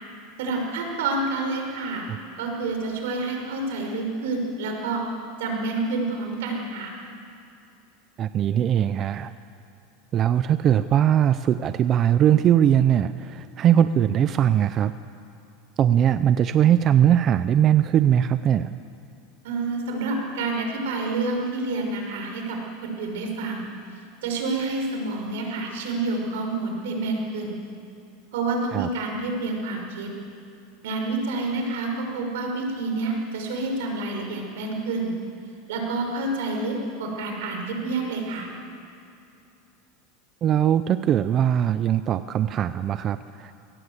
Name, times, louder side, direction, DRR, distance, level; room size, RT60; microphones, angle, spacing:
voice 1, 0.4-2.1 2.4-5.0 5.4-6.9 19.4-23.7 24.2-27.6 28.3-30.1 30.8-35.1 35.7-38.5, right 3 dB, 80° right, 2 dB, 5.5 m, -28 dB
voice 2, 8.2-9.3 10.1-14.9 15.8-18.7 28.7-28.9 40.4-43.5, right 10 dB, 30° right, 12 dB, 0.5 m, -20 dB
22.5 x 18.0 x 8.2 m, 2.6 s
supercardioid pair, 150°, 0 cm